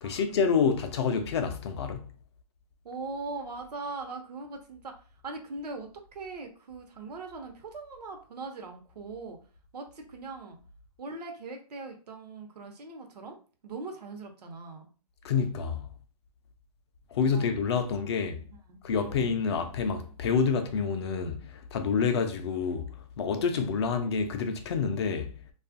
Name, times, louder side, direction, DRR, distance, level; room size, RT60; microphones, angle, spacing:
voice 1, 0.0-2.1 15.2-15.9 17.1-18.4 18.8-25.3, left 5 dB, 45° left, 0.4 m, -28 dB
voice 2, 2.8-4.9 5.2-9.4 9.7-10.6 11.0-13.4 13.6-14.9 17.3-17.5 17.8-19.3, right 3 dB, 80° right, 0.8 m, -41 dB
2.6 x 2.3 x 2.5 m
hypercardioid pair, 150°, 20 cm